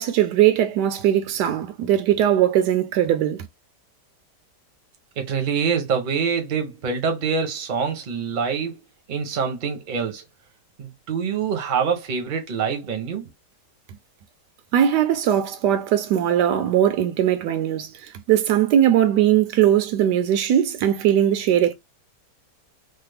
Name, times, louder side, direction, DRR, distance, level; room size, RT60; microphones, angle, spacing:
voice 1, 0.0-3.5 14.7-21.7, right 11 dB, 80° right, 1.2 m, -20 dB
voice 2, 5.2-8.8 9.1-10.2 10.8-13.3, right 6 dB, 40° right, 0.7 m, -25 dB
3.3 x 2.0 x 3.3 m
omnidirectional pair, 1.8 m